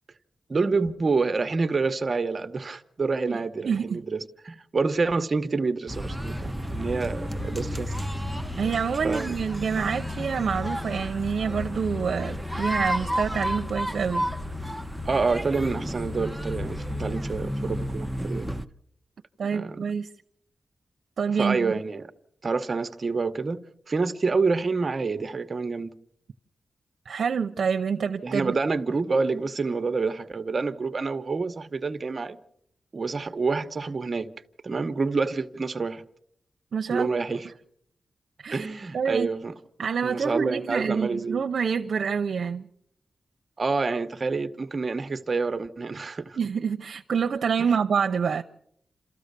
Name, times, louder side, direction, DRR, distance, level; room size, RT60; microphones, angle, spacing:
voice 1, 0.5-8.1 9.0-9.3 15.0-18.5 19.5-19.9 21.3-22.1 22.4-23.6 23.9-25.9 28.2-32.4 32.9-34.3 34.6-36.0 36.9-37.5 38.5-39.5 40.0-41.4 43.6-46.4 47.6-47.7, right 4 dB, 45° right, 0.9 m, -27 dB
voice 2, 3.6-4.0 8.6-14.3 19.4-20.1 21.2-21.7 27.1-28.5 36.7-37.2 38.4-38.7 38.9-39.3 39.8-42.7 46.4-48.4, right 6 dB, 75° right, 0.7 m, -27 dB
sound 1, 5.9-18.7, equal, ahead, 0.8 m, -31 dB
28.0 x 14.0 x 6.8 m
wide cardioid pair, 95°, 0 cm